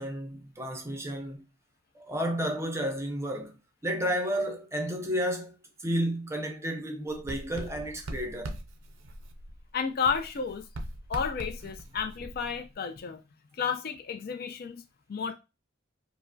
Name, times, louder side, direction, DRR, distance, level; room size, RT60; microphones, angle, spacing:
voice 1, 0.0-1.4 1.9-3.5 3.8-8.5, equal, 15° right, 0.5 m, -32 dB
Writing, 7.1-9.7 10.0-12.7, right 1 dB, 65° right, 0.5 m, -41 dB
voice 2, 9.7-10.7 11.1-13.2 13.6-14.8 15.1-15.3, left 6 dB, 45° left, 0.4 m, -32 dB
4.5 x 2.0 x 2.6 m
head